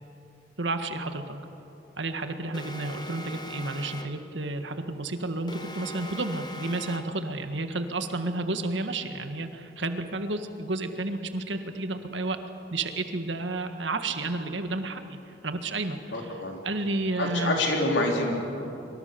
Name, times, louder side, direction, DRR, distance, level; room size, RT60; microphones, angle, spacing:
voice 1, 0.6-1.4 2.0-12.4 12.7-16.4 16.6-17.6, right 2 dB, 90° right, 7 dB, 1.8 m, -31 dB
Alarm, 2.5-4.3 5.5-7.3, equal, 25° left, 1.2 m, -41 dB
voice 2, 16.1-16.6 17.2-18.5, left 1 dB, 85° left, 1 dB, 4.1 m, -27 dB
24.5 x 24.5 x 7.0 m, 3.0 s
head